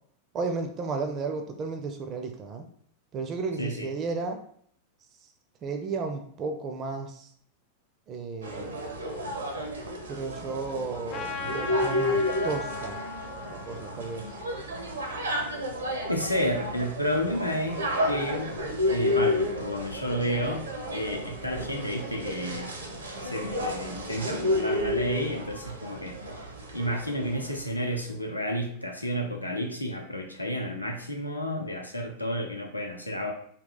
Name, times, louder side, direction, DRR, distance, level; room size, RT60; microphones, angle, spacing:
voice 1, 0.3-2.7 3.1-4.4 5.6-7.3 8.1-8.7 10.1-13.0 13.5-14.3, right 4 dB, 30° right, 5 dB, 0.4 m, -33 dB
sound 1, 8.4-27.7, left 1 dB, 75° right, 0.7 m, -31 dB
Trumpet, 11.1-15.8, left 4 dB, 35° left, 0.4 m, -39 dB
voice 2, 16.1-18.5 18.9-20.6 20.9-22.7 23.2-26.5 26.7-33.3, equal, 85° left, 2 dB, 0.6 m, -31 dB
3.6 x 2.3 x 3.8 m, 0.62 s
figure-of-eight pair, 90°, 0 cm